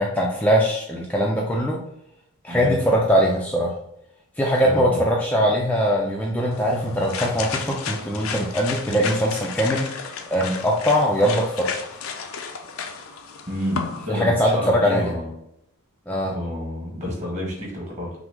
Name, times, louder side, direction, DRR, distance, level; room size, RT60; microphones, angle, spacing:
voice 1, 0.0-1.8 2.4-3.7 4.4-9.9 10.3-11.7 14.1-15.1 16.1-16.3, equal, 5° left, -3 dB, 0.4 m, -21 dB
voice 2, 2.5-2.8 4.6-5.0 13.5-15.3 16.3-18.1, equal, 30° right, -3 dB, 1.5 m, -29 dB
sound 1, 6.5-14.1, left 5 dB, 65° left, 0.5 m, -33 dB
5.9 x 2.1 x 3.6 m, 0.78 s
head